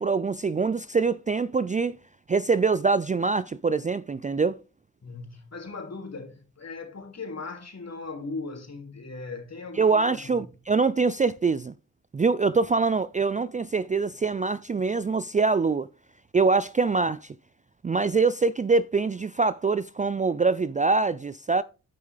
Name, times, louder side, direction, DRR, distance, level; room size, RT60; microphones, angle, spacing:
voice 1, 0.0-2.0 2.3-4.6 9.8-11.7 12.1-15.9 16.3-17.3 17.8-21.6, right 4 dB, 20° right, 0.4 m, -24 dB
voice 2, 5.0-10.6, left 3 dB, 45° left, 3.0 m, -38 dB
11.5 x 5.4 x 3.4 m
supercardioid pair, 40°, 35 cm